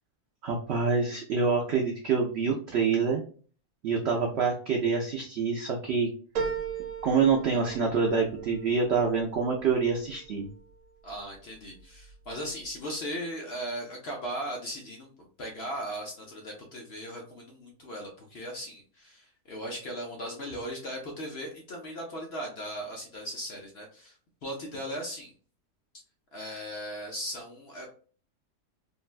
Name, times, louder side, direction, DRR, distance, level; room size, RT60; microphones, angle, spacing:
voice 1, 0.4-3.2 3.8-6.1 7.0-10.5, right 5 dB, 90° right, 1 dB, 0.5 m, -26 dB
sound 1, 6.3-11.1 11.6-12.3 12.7-12.8, right 6 dB, 60° right, 1.1 m, -38 dB
voice 2, 11.0-15.1 15.4-24.2 24.4-25.3 26.3-27.9, equal, 60° left, 0 dB, 0.7 m, -38 dB
3.7 x 2.1 x 2.4 m, 0.42 s
omnidirectional pair, 1.7 m